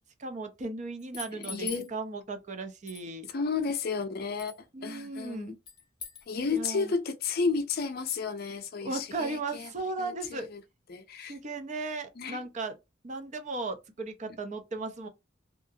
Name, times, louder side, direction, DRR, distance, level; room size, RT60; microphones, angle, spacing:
voice 1, 0.2-3.3 4.7-5.6 6.5-6.9 8.8-10.5 11.3-12.7 13.0-15.1, right 3 dB, 40° right, 0.5 m, -36 dB
sound 1, 1.0-1.9 2.9-3.1 4.4-4.6 5.7-6.3, left 6 dB, 25° left, 0.8 m, -41 dB
voice 2, 1.4-1.9 3.3-4.5 4.8-5.6 6.3-9.7 10.0-10.6 10.9-11.4 12.2-12.4, left 4 dB, 55° left, 0.5 m, -32 dB
2.8 x 2.4 x 2.6 m
head